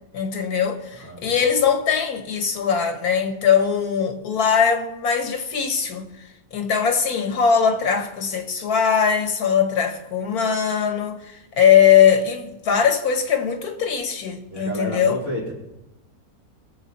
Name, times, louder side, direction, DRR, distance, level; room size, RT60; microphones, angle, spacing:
voice 1, 0.1-6.1 6.5-15.2, left 7 dB, 85° left, 1.8 m, -20 dB
voice 2, 0.9-1.4 14.5-15.5, right 1 dB, 65° right, 4.0 m, -31 dB
20.5 x 7.5 x 4.2 m
omnidirectional pair, 1.6 m